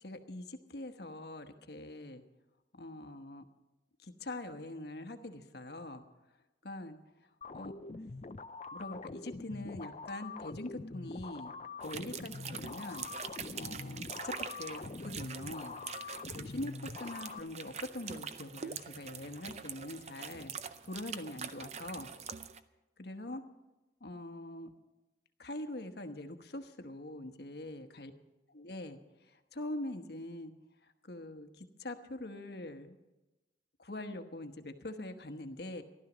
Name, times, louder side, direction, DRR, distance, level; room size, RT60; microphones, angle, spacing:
voice 1, 0.0-2.2 2.8-3.4 4.0-6.0 6.6-7.0 7.5-7.7 8.7-11.5 11.8-13.1 13.5-15.8 16.3-20.5 20.8-22.1 23.0-23.4 24.0-24.7 25.4-28.1 28.5-29.0 29.3-30.5 31.0-33.0 33.8-35.8, left 1 dB, 60° left, 7 dB, 1.1 m, -43 dB
sound 1, 7.4-17.4, left 3 dB, 35° left, 0.5 m, -44 dB
sound 2, 11.8-22.6, right 6 dB, 35° right, 0.5 m, -44 dB
15.0 x 12.0 x 6.2 m, 1.0 s
head